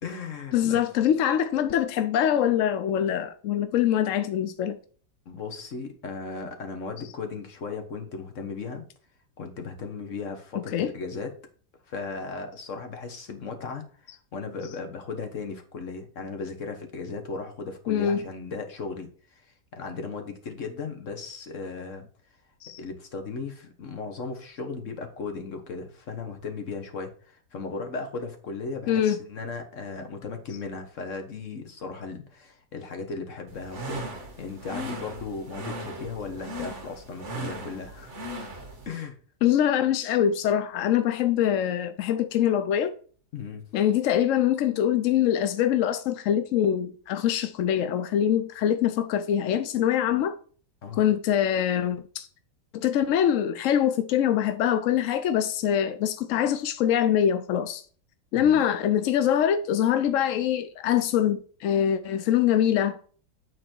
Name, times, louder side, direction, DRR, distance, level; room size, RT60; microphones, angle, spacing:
voice 1, 0.0-0.8 5.2-8.9 9.4-11.3 11.9-22.0 22.8-38.2 38.8-39.2 43.3-43.6 50.8-51.0 58.3-58.6, left 4 dB, 50° left, 1.6 m, -36 dB
voice 2, 0.5-4.8 10.5-10.9 17.9-18.2 22.6-22.8 28.9-29.2 39.4-42.9 43.7-50.4 51.0-52.3 52.7-57.8 58.3-63.0, left 10 dB, 70° left, 0.7 m, -24 dB
sound 1, 33.5-38.9, right 1 dB, 45° right, 1.8 m, -37 dB
9.5 x 4.2 x 4.5 m
omnidirectional pair, 1.8 m